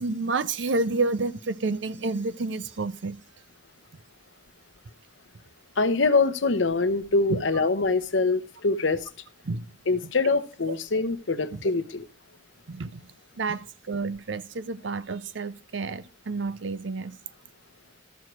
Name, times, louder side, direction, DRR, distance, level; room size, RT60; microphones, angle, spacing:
voice 1, 0.0-3.2 7.3-7.4 9.5-9.7 11.5-11.6 12.7-13.0 13.4-17.2, right 3 dB, 75° right, 0.6 m, -29 dB
voice 2, 5.8-9.0 9.9-12.0, left 3 dB, 90° left, 0.9 m, -24 dB
13.5 x 4.6 x 6.1 m
head